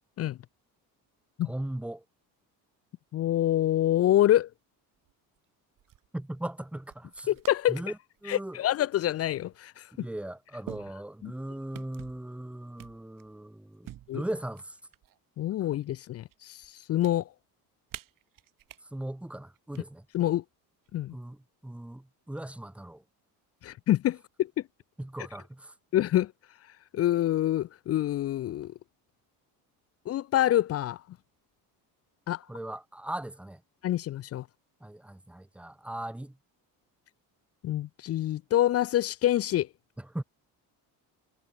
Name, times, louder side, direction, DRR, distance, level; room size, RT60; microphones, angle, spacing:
voice 1, 1.4-2.0 6.1-7.3 7.7-8.0 8.2-8.6 9.9-14.8 18.9-20.0 21.1-21.4 21.6-23.0 25.0-25.7 32.5-33.6 34.8-36.4 40.0-40.2, right 1 dB, 5° right, 0.9 m, -38 dB
voice 2, 3.1-4.5 7.3-7.8 8.3-10.1 11.2-11.3 14.1-14.2 15.4-16.6 16.9-17.3 20.1-20.4 20.9-21.2 23.6-24.5 25.9-26.3 26.9-28.7 30.1-31.0 32.3-32.4 33.8-34.4 37.6-39.7, left 13 dB, 40° left, 0.5 m, -26 dB
sound 1, 5.0-5.4 5.8-6.1 6.9-7.8 8.2-8.5 9.5-9.6 10.6-11.4 11.7-12.2 12.8-13.4 13.8-15.2 15.6-16.3 16.6-17.1 17.9-18.8 19.5-19.8 20.9-21.4, right 13 dB, 55° right, 6.8 m, -48 dB
cardioid pair, 155°, 39 cm